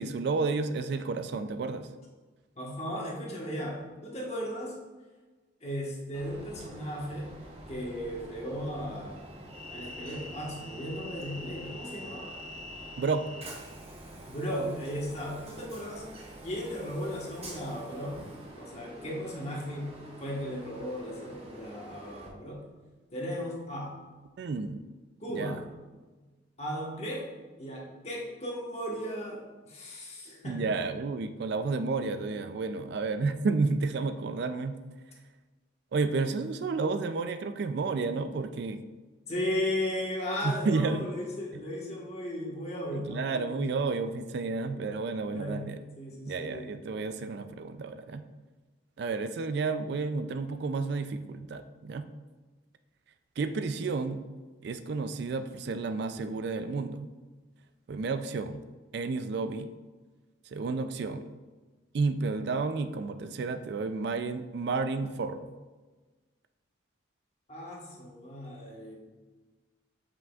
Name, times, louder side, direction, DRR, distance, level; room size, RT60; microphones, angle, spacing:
voice 1, 0.0-1.9 13.0-13.3 24.4-24.8 25.3-25.6 30.4-34.8 35.9-38.8 40.4-41.1 42.9-45.8 46.2-48.2 49.0-52.1 53.4-54.2 54.6-57.1 57.9-58.6 58.9-59.7 60.5-61.3 61.9-65.5, right 4 dB, 55° right, 10 dB, 0.3 m, -31 dB
voice 2, 2.5-4.8 5.6-7.3 7.7-9.4 9.7-12.3 14.3-16.1 16.4-18.3 18.6-22.6 23.1-24.0 25.2-25.6 26.6-27.3 27.6-30.7 39.3-43.8 45.3-46.7 67.5-69.0, equal, 35° left, -2 dB, 1.3 m, -36 dB
Train, 6.1-22.3, equal, 30° right, 0.9 m, -46 dB
7.4 x 5.7 x 2.4 m, 1.3 s
head